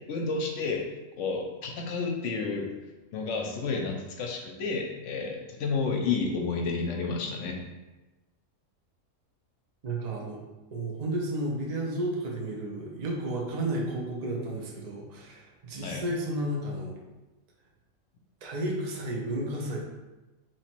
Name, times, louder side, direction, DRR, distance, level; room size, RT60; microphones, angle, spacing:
voice 1, 0.1-0.8 1.2-2.7 3.1-7.6 15.8-16.0, left 4 dB, 70° left, 1 dB, 0.9 m, -30 dB
voice 2, 9.8-10.4 10.7-16.9 18.4-19.8, right 1 dB, 40° right, -1 dB, 0.6 m, -32 dB
3.0 x 2.9 x 4.3 m, 1.1 s
omnidirectional pair, 1.4 m